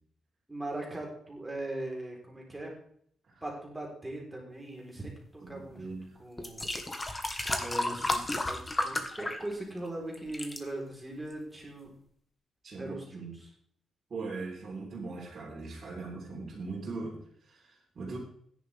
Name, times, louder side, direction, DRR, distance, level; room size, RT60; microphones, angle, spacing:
voice 1, 0.5-2.7 3.4-6.7 7.4-11.9 12.8-13.5, right 1 dB, 10° right, -1 dB, 3.8 m, -40 dB
voice 2, 5.4-6.2 12.6-13.3 14.1-18.2, right 3 dB, 40° right, -7 dB, 3.7 m, -40 dB
sound 1, 5.8-5.9 6.4-9.9 10.1-10.6 11.3-11.4, left 2 dB, 15° left, 1.3 m, -33 dB
16.0 x 10.5 x 3.4 m, 0.63 s
wide cardioid pair, 160°, 0 cm